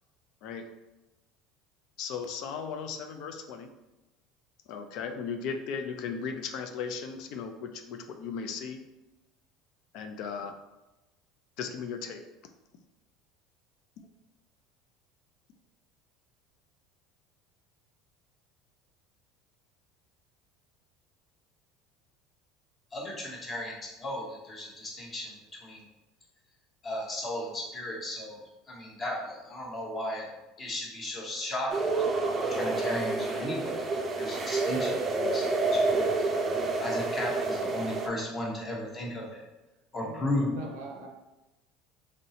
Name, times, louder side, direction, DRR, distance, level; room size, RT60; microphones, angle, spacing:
voice 1, 2.0-3.7 4.7-8.8 9.9-10.5 11.6-12.2, left 6 dB, 65° left, 6 dB, 0.3 m, -36 dB
voice 2, 22.9-23.7 24.0-25.3 25.6-25.8 26.8-28.4 28.7-30.3 30.6-31.9 32.5-36.3 36.8-39.4 39.9-40.5, left 1 dB, 30° left, -2 dB, 0.9 m, -35 dB
sound 1, 31.7-38.1, right 3 dB, 30° right, 0.4 m, -28 dB
voice 3, 40.0-41.1, right 1 dB, 90° right, 2 dB, 0.6 m, -42 dB
3.1 x 2.6 x 2.8 m, 1.0 s
supercardioid pair, 115°, 0 cm